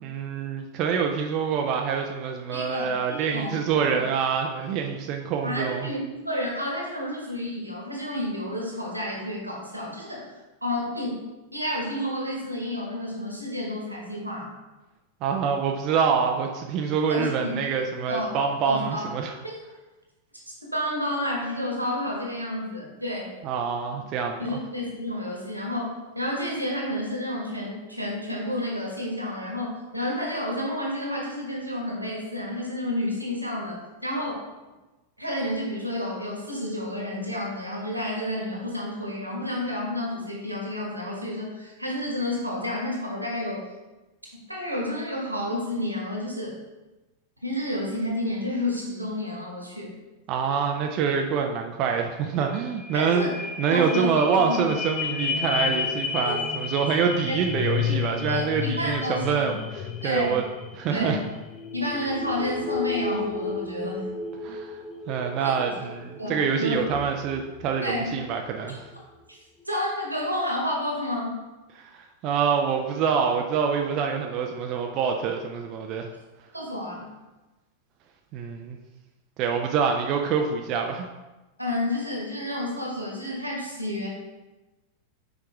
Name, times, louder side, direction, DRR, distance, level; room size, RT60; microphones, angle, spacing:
voice 1, 0.0-5.9 15.2-19.3 23.4-24.6 50.3-53.3 53.6-60.4 60.7-61.2 64.4-64.8 65.1-68.8 71.8-76.1 78.3-78.8 79.4-81.1, right 6 dB, 40° right, 3 dB, 0.4 m, -26 dB
voice 2, 2.5-4.0 5.4-10.3 10.6-11.2 11.5-14.5 17.1-17.5 18.1-18.4 18.7-19.0 19.4-19.5 20.7-23.3 24.4-34.4 35.2-43.7 44.5-46.6 47.4-49.9 52.9-53.3 53.7-54.6 56.2-56.4 57.3-57.4 58.3-59.6 60.0-60.4 60.9-61.2 61.7-64.1 65.4-65.5 66.2-66.8 67.8-68.1 69.6-71.4 76.5-77.1 81.6-84.1, left 1 dB, 85° right, -2 dB, 1.5 m, -30 dB
sound 1, 52.1-52.2 52.5-68.4 68.9-69.0, left 6 dB, 30° left, 0.6 m, -32 dB
5.9 x 4.7 x 3.4 m, 1.1 s
figure-of-eight pair, 90°, 0 cm